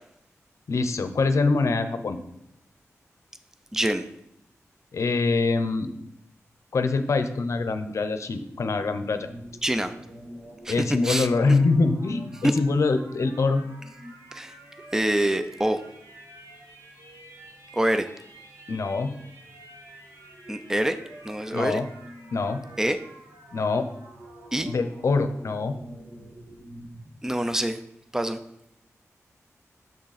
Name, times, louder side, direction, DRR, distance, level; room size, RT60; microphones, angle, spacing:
voice 1, 0.7-2.2 4.9-5.9 6.7-9.3 10.7-13.6 18.7-19.2 21.5-21.9 22.3-22.6 23.5-23.9 24.7-25.8, left 3 dB, 65° left, 9 dB, 0.6 m, -24 dB
voice 2, 3.7-4.0 9.6-9.9 10.6-11.3 14.3-14.5 14.9-15.8 17.7-18.1 20.5-21.0 21.2-21.8 22.8-23.0 24.5-24.7 27.2-27.8 28.1-28.4, right 1 dB, 10° right, 10 dB, 0.4 m, -25 dB
sound 1, 9.0-27.1, right 1 dB, 60° right, 1.8 m, -47 dB
6.6 x 6.4 x 4.1 m, 0.78 s
wide cardioid pair, 140°, 6 cm